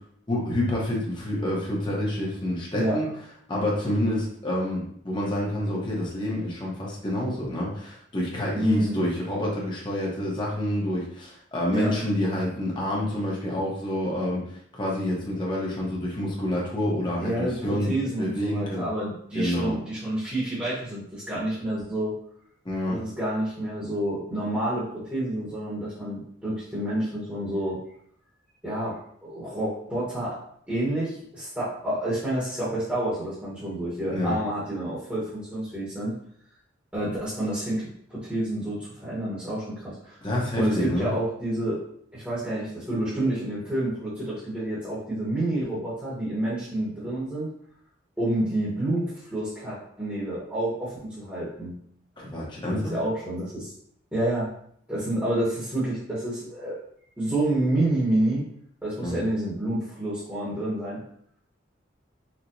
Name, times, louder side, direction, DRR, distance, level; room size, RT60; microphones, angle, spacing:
voice 1, 0.3-3.1 3.5-18.8 19.3-19.8 22.6-23.0 34.1-34.3 40.2-41.1 52.2-52.9 59.0-59.2, left 1 dB, 25° left, -4 dB, 0.8 m, -28 dB
voice 2, 8.5-9.0 11.7-11.9 17.2-22.2 22.9-27.8 28.6-30.4 30.7-36.1 36.9-40.2 40.6-41.8 42.1-47.5 48.2-51.7 52.7-53.7 54.1-54.5 54.9-56.8 57.2-58.4 58.8-61.0, right 1 dB, 10° right, -10 dB, 1.0 m, -29 dB
4.4 x 2.2 x 2.6 m, 0.66 s
head